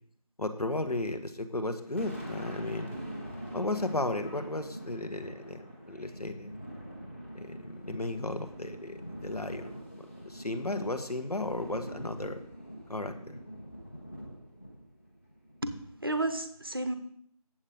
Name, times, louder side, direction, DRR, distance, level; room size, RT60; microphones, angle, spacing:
voice 1, 0.4-3.0 3.5-6.5 7.3-12.4 12.9-13.4, left 2 dB, 80° left, 7 dB, 1.4 m, -35 dB
Thunder, 1.6-16.2, equal, 20° left, 1.3 m, -44 dB
voice 2, 15.6-16.9, right 2 dB, 40° right, 9 dB, 0.7 m, -32 dB
8.7 x 7.6 x 5.0 m, 0.67 s
figure-of-eight pair, 175°, 19 cm